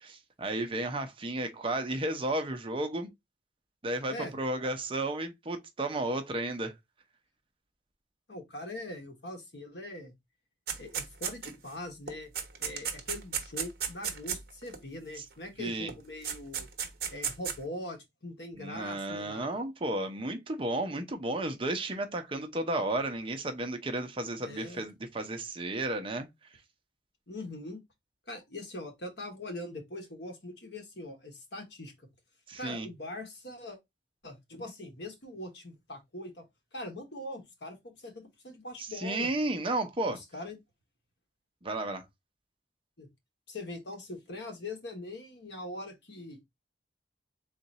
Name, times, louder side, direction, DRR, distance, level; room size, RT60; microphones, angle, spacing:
voice 1, 0.0-3.1 3.8-6.7 15.2-15.3 15.6-15.9 18.6-26.3 32.5-32.9 38.8-40.2 41.6-42.0, right 2 dB, 30° right, 0.7 m, -33 dB
voice 2, 8.3-10.1 10.8-12.3 12.6-16.7 17.1-19.5 24.4-24.8 27.3-27.8 28.3-32.1 32.6-33.8 34.2-36.4 36.7-39.3 40.1-40.6 43.0-43.1 43.5-46.4, left 1 dB, 70° left, 1.2 m, -42 dB
sound 1, 10.7-11.7 12.1-14.8 15.9-16.0 16.2-17.6, right 7 dB, 55° right, 0.9 m, -34 dB
3.8 x 2.5 x 4.1 m
head